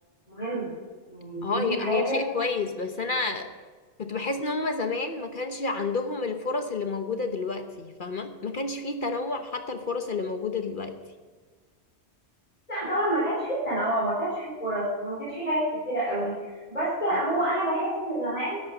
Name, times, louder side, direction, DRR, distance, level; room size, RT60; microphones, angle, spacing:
voice 1, 0.3-0.7 1.1-2.2 12.7-18.6, right 1 dB, 35° left, -8 dB, 4.7 m, -28 dB
voice 2, 1.4-3.5 4.0-11.0 17.1-17.2, left 4 dB, 50° left, 6 dB, 1.1 m, -30 dB
13.5 x 11.0 x 6.4 m, 1.4 s
omnidirectional pair, 1.2 m